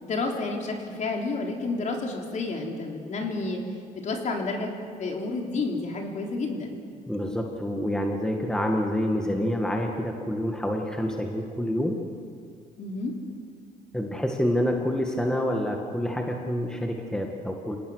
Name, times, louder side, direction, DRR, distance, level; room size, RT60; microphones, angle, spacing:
voice 1, 0.0-3.6 3.9-4.7 5.0-6.8 12.8-13.1, left 3 dB, 45° left, 1 dB, 3.9 m, -30 dB
voice 2, 7.1-12.0 13.9-17.8, equal, 5° left, 2 dB, 2.0 m, -27 dB
27.5 x 18.0 x 6.6 m, 2.2 s
cardioid pair, 110°, 17 cm